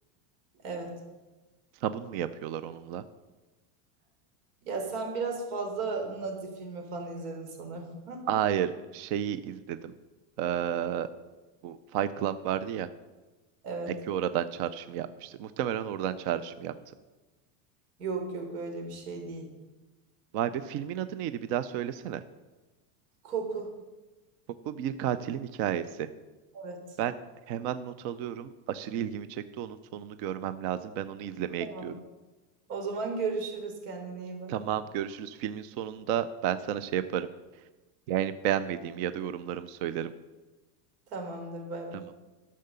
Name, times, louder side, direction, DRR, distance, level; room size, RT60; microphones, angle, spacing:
voice 1, 0.6-0.9 4.6-8.3 13.6-13.9 18.0-19.5 23.2-23.7 26.5-26.8 31.6-31.9 32.7-34.5 41.1-42.1, right 4 dB, 85° right, 3 dB, 3.4 m, -35 dB
voice 2, 1.8-3.0 8.3-9.9 10.4-11.1 11.6-12.9 14.1-16.7 20.3-22.2 24.7-26.1 27.0-27.1 27.5-31.9 34.5-37.3 38.1-40.1, right 10 dB, 40° right, 13 dB, 0.4 m, -32 dB
12.0 x 6.6 x 6.8 m, 1.2 s
supercardioid pair, 165°, 46 cm